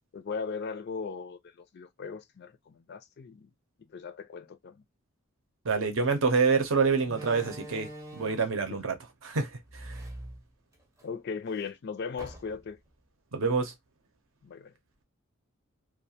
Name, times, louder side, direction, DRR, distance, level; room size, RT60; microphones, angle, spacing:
voice 1, 0.1-3.5 3.9-4.8 8.7-8.9 11.0-12.8 14.4-14.7, left 5 dB, 50° left, 0.4 m, -38 dB
voice 2, 5.6-9.0 9.2-10.0 13.3-13.7, right 4 dB, 65° right, 0.7 m, -27 dB
Slam, 6.0-6.2 7.0-8.6 9.6-11.1 11.4-11.5 12.2-12.8, right 1 dB, 15° right, 0.6 m, -44 dB
2.4 x 2.2 x 2.6 m
head